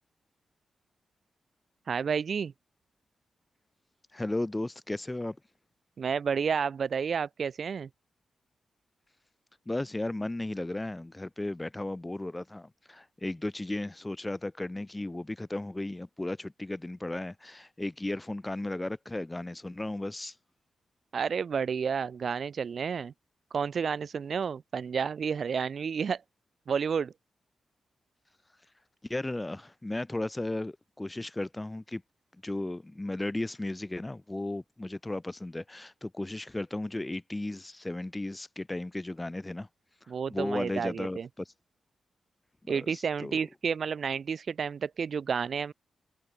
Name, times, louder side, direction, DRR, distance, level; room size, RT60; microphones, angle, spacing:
voice 1, 1.9-2.5 6.0-7.9 21.1-23.1 23.5-26.2 26.7-27.1 40.1-41.3 42.7-45.7, right 6 dB, 65° right, 0.4 m, -30 dB
voice 2, 4.1-5.4 9.7-20.4 29.0-32.0 32.4-39.7 40.3-41.5 42.6-43.4, left 2 dB, 20° left, 2.4 m, -35 dB
cardioid pair, 55°, 0 cm